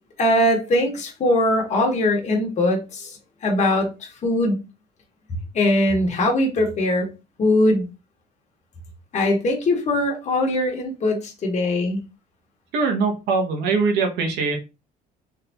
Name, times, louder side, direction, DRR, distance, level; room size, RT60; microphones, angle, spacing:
voice 1, 0.2-3.2 3.4-4.6 5.5-7.1 7.4-7.8 9.1-12.0, left 1 dB, 45° left, 1.5 m, -21 dB
voice 2, 12.7-14.6, right 4 dB, 85° right, 1.2 m, -22 dB
3.7 x 3.3 x 2.9 m
cardioid pair, 110°, 17 cm